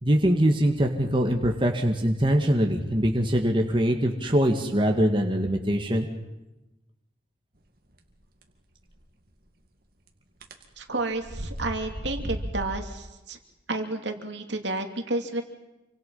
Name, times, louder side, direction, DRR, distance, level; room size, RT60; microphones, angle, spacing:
voice 1, 0.0-6.1, equal, 25° right, 2 dB, 2.0 m, -23 dB
sound 1, 8.9-9.0 10.4-10.6 11.1-12.7, equal, 50° right, 2.3 m, -34 dB
voice 2, 10.8-13.4 13.7-15.4, right 2 dB, 70° right, 5 dB, 2.6 m, -31 dB
27.5 x 25.0 x 5.6 m, 0.98 s
head